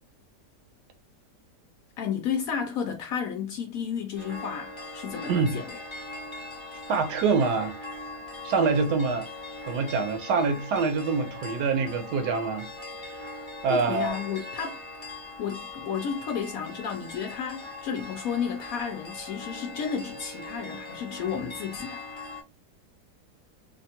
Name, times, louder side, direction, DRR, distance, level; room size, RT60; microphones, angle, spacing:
voice 1, 2.0-5.7 13.7-14.8 15.4-22.0, left 7 dB, 70° left, 0.9 m, -32 dB
sound 1, 4.2-22.4, left 2 dB, 40° left, 0.4 m, -40 dB
voice 2, 6.9-7.8 8.4-9.3 9.7-12.7 13.6-14.2, right 4 dB, 75° right, 1.2 m, -25 dB
3.5 x 2.2 x 2.7 m
omnidirectional pair, 1.8 m